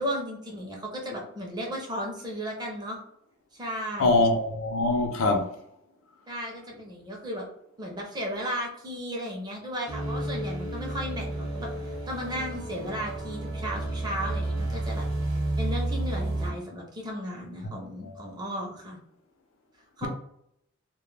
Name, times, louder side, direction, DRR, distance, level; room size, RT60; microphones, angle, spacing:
voice 1, 0.0-3.0 3.5-4.3 6.3-7.5 7.8-19.0 20.0-20.1, equal, 20° right, 0.5 m, -35 dB
voice 2, 4.0-5.5 18.0-18.1, left 2 dB, 70° left, 0.5 m, -23 dB
sound 1, 9.9-16.5, right 2 dB, 60° right, 0.7 m, -31 dB
2.2 x 2.1 x 3.1 m
head